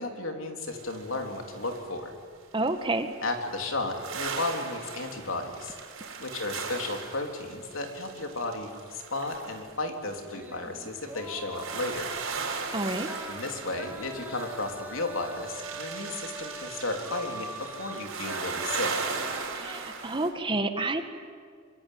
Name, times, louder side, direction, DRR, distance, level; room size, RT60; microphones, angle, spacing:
voice 1, 0.0-2.1 3.2-5.8 6.2-12.1 13.3-19.0, left 2 dB, 75° left, 3 dB, 3.7 m, -34 dB
sound 1, 0.7-2.0 2.6-20.3, right 5 dB, 90° right, 5.4 m, -38 dB
voice 2, 2.5-3.1 12.7-13.1 19.5-21.0, right 2 dB, 25° right, 7 dB, 1.6 m, -29 dB
sound 2, 10.3-19.9, right 2 dB, 10° right, 2.1 m, -43 dB
25.5 x 23.5 x 9.6 m, 2.1 s
head